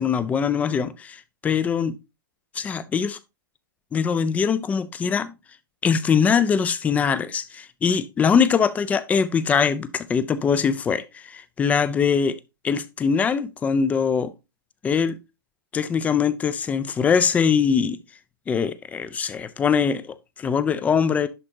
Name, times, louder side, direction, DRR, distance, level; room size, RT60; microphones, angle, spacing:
voice 1, 0.0-2.0 2.5-3.2 3.9-5.3 5.8-12.4 12.6-14.3 14.8-15.2 15.7-18.0 18.5-21.3, left 6 dB, 15° left, 0.4 m, -22 dB
11.0 x 4.3 x 2.8 m
figure-of-eight pair, 110°, 11 cm